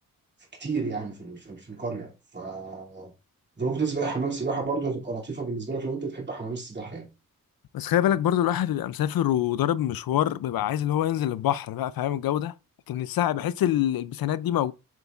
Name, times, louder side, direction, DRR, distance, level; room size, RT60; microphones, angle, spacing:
voice 1, 0.6-3.1 3.6-7.1, right 4 dB, 30° right, 2.6 m, -31 dB
voice 2, 7.7-12.5 12.9-14.7, left 11 dB, 80° left, 0.5 m, -25 dB
8.3 x 6.8 x 2.4 m
wide cardioid pair, 175°, 35 cm